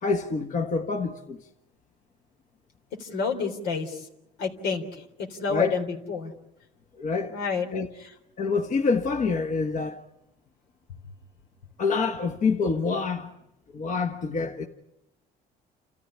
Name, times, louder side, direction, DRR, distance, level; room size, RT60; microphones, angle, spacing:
voice 1, 0.0-1.4 5.5-5.8 7.0-7.3 7.7-7.9 8.4-10.0 11.8-13.3 13.7-14.6, left 4 dB, 50° left, 1.6 m, -26 dB
voice 2, 3.0-4.0 4.4-6.3 7.3-7.7, left 5 dB, 85° left, 3.7 m, -29 dB
29.5 x 14.0 x 9.9 m
cardioid pair, 110°, 17 cm